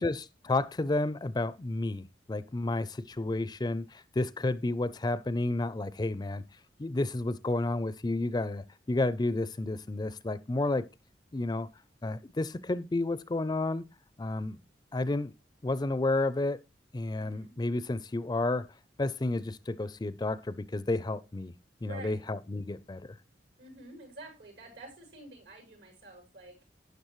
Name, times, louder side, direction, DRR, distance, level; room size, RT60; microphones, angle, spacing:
voice 1, 0.0-6.4 6.8-10.9 11.3-11.7 12.0-13.8 14.2-14.6 14.9-15.3 15.6-16.6 16.9-18.7 19.0-21.5 21.8-23.0, left 2 dB, 25° left, 0.4 m, -31 dB
voice 2, 17.2-17.6 21.8-22.2 23.6-26.6, right 2 dB, 85° right, 6.2 m, -48 dB
12.0 x 9.5 x 3.1 m
head